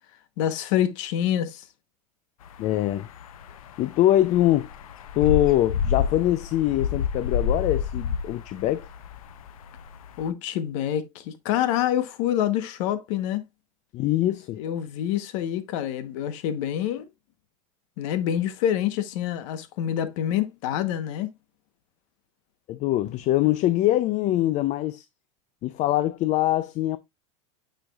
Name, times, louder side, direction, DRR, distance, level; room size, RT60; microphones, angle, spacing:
voice 1, 0.4-1.7 10.2-13.4 14.5-17.1 18.0-21.3, left 11 dB, 65° left, 1.0 m, -26 dB
sound 1, 2.4-10.3, left 7 dB, 90° left, 0.7 m, -30 dB
voice 2, 2.6-3.1 3.8-4.7 5.1-8.9 13.9-14.6 22.7-25.0 25.6-27.0, left 14 dB, 45° left, 0.5 m, -23 dB
8.8 x 5.1 x 2.3 m
supercardioid pair, 115°, 17 cm